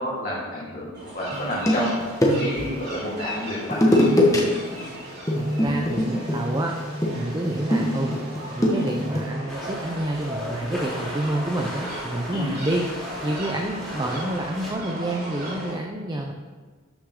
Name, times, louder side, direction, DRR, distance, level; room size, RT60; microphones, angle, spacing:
voice 1, 0.0-2.0 2.4-4.0 12.3-12.5, equal, 40° left, -7 dB, 1.9 m, -30 dB
sound 1, 0.9-15.7, equal, 50° right, 3.0 m, -37 dB
sound 2, 1.3-2.7 3.7-4.4 4.7-4.9 5.3-9.3, left 1 dB, 15° left, 1.3 m, -22 dB
voice 2, 5.3-6.7 7.1-8.1 8.5-12.8 13.2-16.3, right 1 dB, 20° right, 1 dB, 0.6 m, -28 dB
sound 3, 9.5-14.7, equal, ahead, 3.1 m, -36 dB
12.5 x 6.5 x 3.7 m, 1.4 s
head